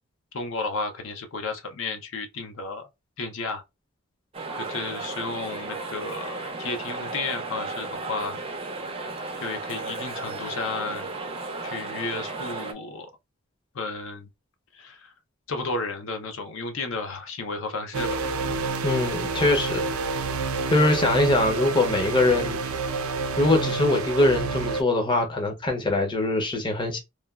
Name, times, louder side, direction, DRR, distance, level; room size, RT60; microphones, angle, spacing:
voice 1, 0.3-2.9 3.2-3.6 4.6-8.4 9.4-11.1 11.6-13.1 13.7-14.3 14.7-15.1 15.5-18.3, left 3 dB, 65° left, 0.5 m, -33 dB
sound 1, 4.3-12.7, right 3 dB, 25° right, 0.4 m, -34 dB
sound 2, 17.9-24.8, right 4 dB, 90° right, 0.5 m, -28 dB
voice 2, 18.8-20.2 20.7-22.6 23.4-27.0, left 2 dB, 20° left, 0.6 m, -23 dB
3.1 x 2.2 x 2.3 m
head